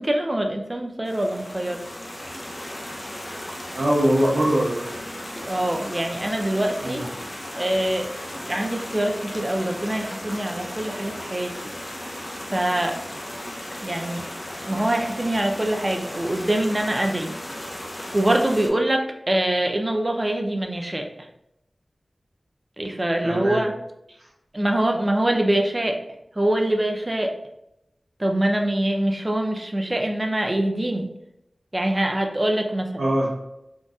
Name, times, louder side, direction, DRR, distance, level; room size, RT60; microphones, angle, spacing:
voice 1, 0.0-1.8 5.4-7.0 7.6-8.1 8.5-11.5 12.5-13.0 13.8-14.3 14.6-17.3 18.1-21.1 22.8-23.7 24.5-26.0 26.4-27.4 28.2-31.1 31.7-33.1, right 1 dB, 25° right, 3 dB, 0.5 m, -24 dB
sound 1, 1.1-18.7, left 1 dB, 30° left, 0.6 m, -35 dB
voice 2, 3.7-4.8 6.8-7.0 23.2-23.6 33.0-33.3, right 1 dB, 90° right, -6 dB, 0.7 m, -22 dB
3.8 x 2.5 x 2.3 m, 0.84 s
wide cardioid pair, 70°, 0 cm